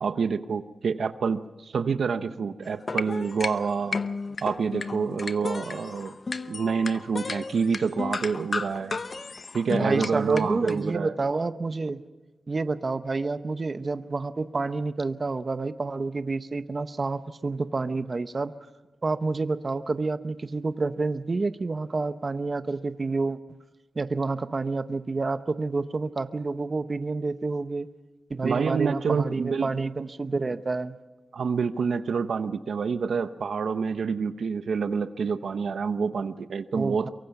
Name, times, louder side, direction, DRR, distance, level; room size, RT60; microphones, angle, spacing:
voice 1, 0.0-4.0 4.4-6.2 6.5-9.0 9.5-11.1 28.4-29.7 31.3-37.1, right 5 dB, 75° right, 11 dB, 0.8 m, -27 dB
sound 1, 2.7-10.8, left 4 dB, 45° left, 0.8 m, -33 dB
voice 2, 9.7-12.0 12.5-18.5 19.0-23.4 23.9-27.9 28.3-31.0 36.7-37.1, right 3 dB, 40° right, 11 dB, 0.9 m, -29 dB
23.5 x 23.5 x 5.9 m, 1.2 s
wide cardioid pair, 85°, 0 cm